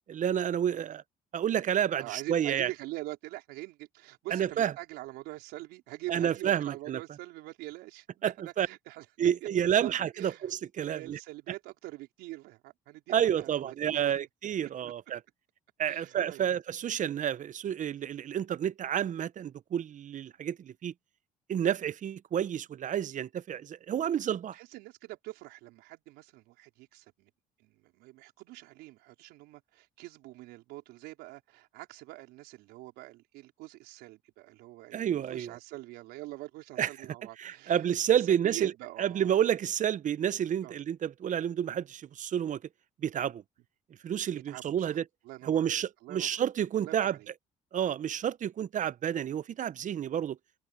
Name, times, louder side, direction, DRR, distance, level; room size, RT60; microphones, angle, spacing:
voice 1, 0.1-1.0 1.3-2.7 4.3-4.7 6.1-7.0 8.2-8.3 8.6-8.7 9.2-11.2 13.1-15.2 15.8-20.9 21.5-24.6 34.9-35.5 36.8-36.9 37.4-38.7 39.0-42.6 43.0-43.4 44.0-45.0 45.5-47.2 47.7-50.4, right 9 dB, 50° right, 0.9 m, -30 dB
voice 2, 1.9-9.0 9.4-10.5 10.9-14.2 15.9-16.5 24.5-27.3 27.6-37.9 38.1-39.3 40.6-40.7 44.3-45.0 45.2-46.4 46.8-47.3, right 19 dB, 80° right, 4.9 m, -44 dB
open air
supercardioid pair, 70°, 17 cm